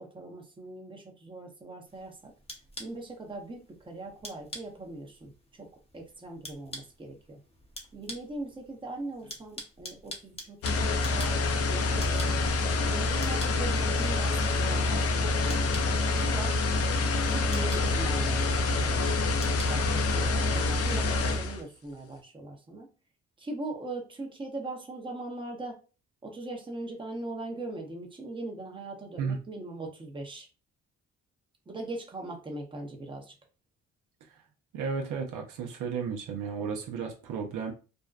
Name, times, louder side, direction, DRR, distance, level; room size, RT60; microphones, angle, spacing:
voice 1, 0.0-2.3 2.8-5.7 5.9-7.4 7.9-12.4 12.9-16.6 17.1-22.9 23.4-25.8 26.2-30.5 31.7-33.3, right 2 dB, 15° right, 0.7 m, -40 dB
sound 1, 1.9-20.6, left 1 dB, 20° left, 0.7 m, -48 dB
sound 2, 10.6-21.6, left 3 dB, 50° left, 0.5 m, -26 dB
voice 2, 34.7-37.7, right 6 dB, 85° right, 0.6 m, -33 dB
2.5 x 2.1 x 2.3 m
cardioid pair, 90°, 30 cm